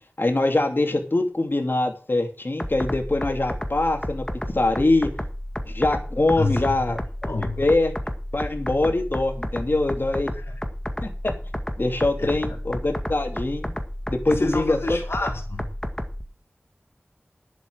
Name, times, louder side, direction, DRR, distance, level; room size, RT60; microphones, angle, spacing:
voice 1, 0.2-4.2 4.5-5.1 5.7-7.0 7.4-7.9 8.3-10.3 11.0-11.3 11.8-13.7 14.1-14.8, left 2 dB, 60° left, 4 dB, 2.7 m, -23 dB
sound 1, 2.6-16.2, equal, 15° left, 1.9 m, -31 dB
voice 2, 6.4-7.6 10.4-10.5 12.2-12.6 14.3-15.7, left 2 dB, 90° left, 3 dB, 2.2 m, -29 dB
11.5 x 7.9 x 6.4 m, 0.36 s
wide cardioid pair, 55°, 4 cm